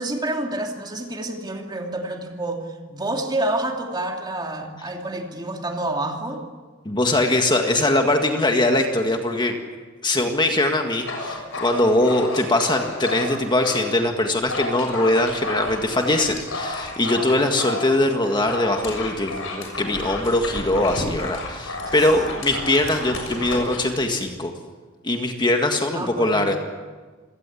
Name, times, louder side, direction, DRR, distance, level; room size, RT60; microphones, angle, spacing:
voice 1, 0.0-6.4 21.8-22.1 25.9-26.4, right 1 dB, 20° right, 2 dB, 2.8 m, -28 dB
voice 2, 6.9-9.6 10.0-24.5 25.0-26.6, left 1 dB, 20° left, 4 dB, 1.8 m, -21 dB
Dog, 10.9-13.9 14.2-23.9, left 2 dB, 70° left, 6.7 m, -32 dB
27.0 x 17.5 x 8.5 m, 1.4 s
head